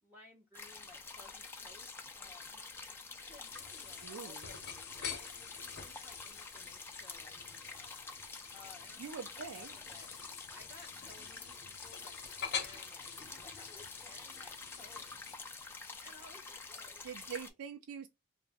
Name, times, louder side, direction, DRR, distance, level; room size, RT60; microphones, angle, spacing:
voice 1, 0.0-2.6 3.3-8.0 8.5-10.1 10.5-15.1 16.0-17.5, left 2 dB, 10° right, 0.8 m, -59 dB
sound 1, 0.5-17.5, left 4 dB, 10° left, 0.3 m, -48 dB
sound 2, 3.4-15.4, left 7 dB, 50° left, 0.7 m, -47 dB
voice 2, 4.0-4.5 9.0-9.8 17.0-18.1, right 6 dB, 80° right, 0.4 m, -44 dB
2.4 x 2.0 x 3.4 m
head